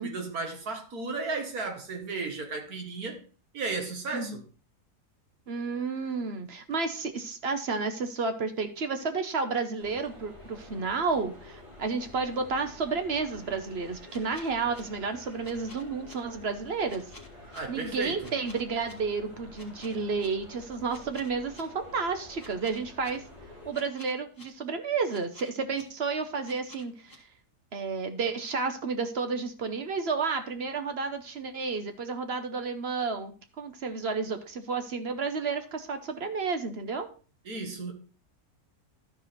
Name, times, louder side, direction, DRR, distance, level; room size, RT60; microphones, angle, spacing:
voice 1, 0.0-3.2 3.5-4.4 17.5-18.3 37.5-37.9, right 3 dB, 70° right, 2.0 m, -34 dB
voice 2, 5.5-17.0 17.7-23.2 23.7-27.2 27.7-37.1, right 4 dB, 50° right, 0.9 m, -31 dB
sound 1, 9.8-23.7, left 1 dB, 25° right, 3.0 m, -49 dB
sound 2, 14.1-14.8 15.4-16.1 16.9-17.6 18.2-18.9 19.5-20.3 20.9-21.6 22.4-23.1 23.7-24.4 25.1-25.8 26.4-27.2, left 2 dB, 15° left, 1.7 m, -51 dB
12.5 x 4.8 x 4.1 m
omnidirectional pair, 1.7 m